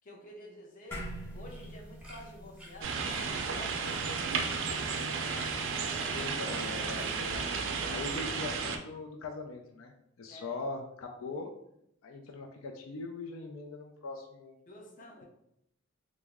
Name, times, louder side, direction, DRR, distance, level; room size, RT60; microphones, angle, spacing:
voice 1, 0.0-1.0 1.3-4.2 10.3-10.6 14.7-15.2, left 1 dB, 40° left, -1 dB, 0.7 m, -50 dB
sound 1, 0.9-5.5, equal, 10° left, 1.0 m, -45 dB
sound 2, 0.9-7.5, equal, 5° right, 0.6 m, -53 dB
sound 3, 2.8-8.8, right 5 dB, 65° right, 0.4 m, -33 dB
voice 2, 5.8-7.5 7.9-11.5 12.0-14.6, left 3 dB, 90° left, 3 dB, 0.4 m, -41 dB
3.4 x 2.0 x 3.5 m, 0.76 s
head